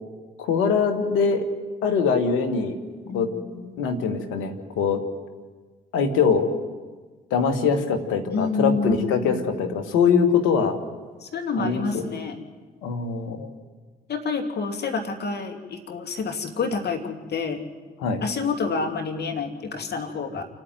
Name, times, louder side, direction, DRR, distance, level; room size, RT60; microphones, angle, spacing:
voice 1, 0.4-1.5 1.8-2.7 3.1-3.3 3.8-5.0 5.9-6.5 7.3-10.8 11.6-12.0 12.8-13.5 18.0-18.2, left 5 dB, 75° left, 6 dB, 2.0 m, -22 dB
voice 2, 3.0-4.0 8.3-9.6 11.2-12.4 14.1-17.6 18.2-20.4, left 4 dB, 50° left, 3 dB, 2.8 m, -28 dB
28.5 x 9.7 x 9.4 m, 1.4 s
hypercardioid pair, 40°, 21 cm